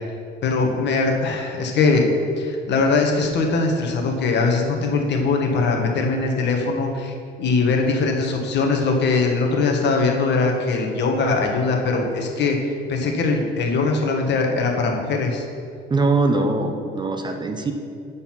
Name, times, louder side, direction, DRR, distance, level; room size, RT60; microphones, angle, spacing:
voice 1, 0.4-2.1 2.4-12.6 12.9-15.4, left 3 dB, 55° left, 2 dB, 1.3 m, -21 dB
voice 2, 15.9-17.7, right 3 dB, 20° right, 5 dB, 0.7 m, -21 dB
9.1 x 4.1 x 5.8 m, 2.3 s
cardioid pair, 105°, 21 cm